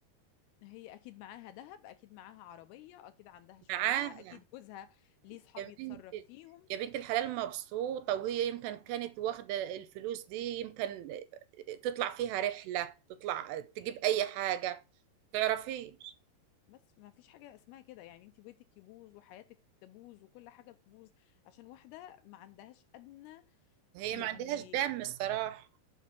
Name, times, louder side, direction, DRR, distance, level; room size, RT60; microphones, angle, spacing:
voice 1, 0.6-6.7 16.7-23.6 24.1-24.8, left 13 dB, 80° left, 2.4 m, -52 dB
voice 2, 3.7-4.3 5.6-6.2 6.7-11.3 11.5-14.8 15.3-16.1 23.9-25.7, right 12 dB, 90° right, 2.8 m, -34 dB
7.4 x 5.9 x 5.8 m
omnidirectional pair, 4.9 m